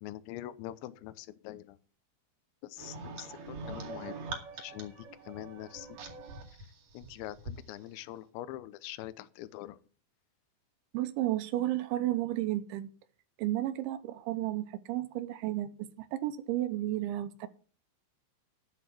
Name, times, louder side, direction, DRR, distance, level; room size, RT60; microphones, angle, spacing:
voice 1, 0.0-1.8 2.6-4.9 5.3-5.9 6.9-9.8, left 14 dB, 80° left, 3.0 m, -44 dB
sound 1, 2.8-7.6, right 3 dB, 50° right, 3.3 m, -43 dB
voice 2, 10.9-12.9 13.4-15.7 16.0-17.5, right 14 dB, 80° right, 3.1 m, -32 dB
10.5 x 8.6 x 6.0 m
omnidirectional pair, 5.4 m